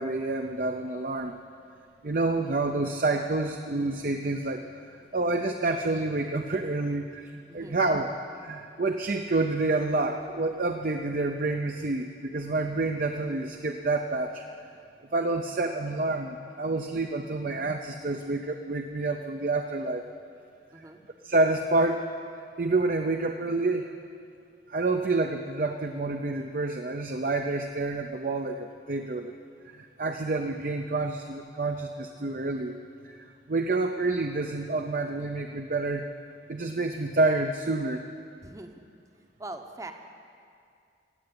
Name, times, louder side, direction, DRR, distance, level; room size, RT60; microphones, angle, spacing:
voice 1, 0.0-1.3 2.0-4.6 4.9-8.1 8.4-14.4 15.1-20.0 20.7-20.8 21.2-22.1 22.6-23.9 24.7-29.3 29.7-32.8 33.0-36.0 36.5-38.0, right 2 dB, 45° right, 5 dB, 0.6 m, -28 dB
voice 2, 7.5-7.8 20.7-21.0 38.4-38.8 39.1-39.9, right 2 dB, 15° right, 6 dB, 0.8 m, -42 dB
16.0 x 8.7 x 8.7 m, 2.4 s
head